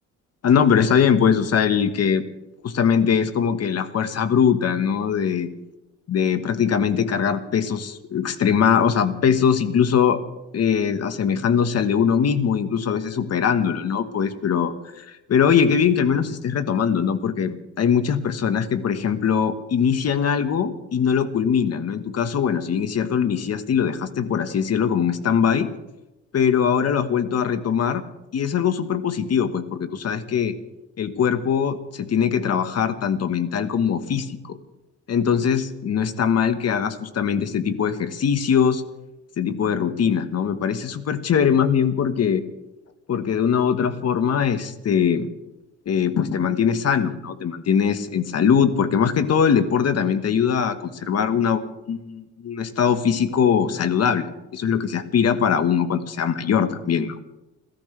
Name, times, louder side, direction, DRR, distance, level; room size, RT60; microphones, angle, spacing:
voice 1, 0.4-2.2 2.6-5.5 6.1-10.2 10.5-25.7 26.3-28.0 28.3-30.5 31.0-34.6 35.1-38.8 39.4-42.4 43.1-45.3 45.8-51.6 51.9-54.3 54.5-57.2, left 7 dB, 55° left, 10 dB, 1.5 m, -21 dB
30.0 x 13.0 x 3.4 m, 0.98 s
cardioid pair, 90°, 30 cm